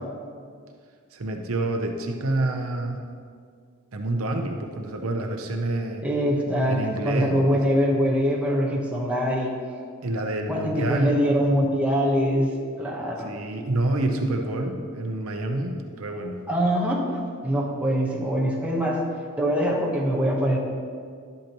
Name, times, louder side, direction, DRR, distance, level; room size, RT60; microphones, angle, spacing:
voice 1, 1.1-3.0 3.9-6.0 6.7-7.7 10.0-11.3 13.2-16.4, right 2 dB, 65° right, 3 dB, 0.7 m, -27 dB
voice 2, 6.0-9.5 10.5-13.3 16.5-19.0 19.4-20.6, equal, 5° right, -3 dB, 1.1 m, -23 dB
11.5 x 8.3 x 3.0 m, 2.1 s
head